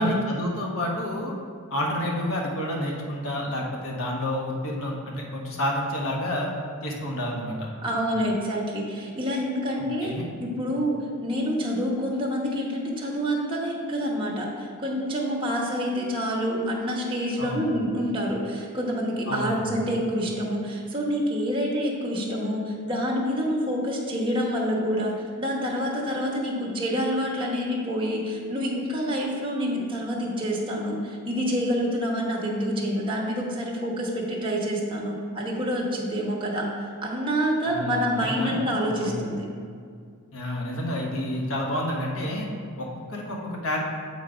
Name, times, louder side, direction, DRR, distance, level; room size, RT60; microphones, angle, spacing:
voice 1, 0.0-1.3 1.7-6.5 6.8-7.7 9.8-10.2 17.4-17.7 19.3-19.7 37.7-38.7 39.0-39.2 40.3-42.5 42.8-43.8, left 1 dB, 65° left, -1 dB, 1.2 m, -29 dB
voice 2, 7.8-10.1 10.4-36.7 37.0-39.4, equal, 25° right, -3 dB, 1.2 m, -27 dB
7.3 x 4.2 x 4.9 m, 2.2 s
head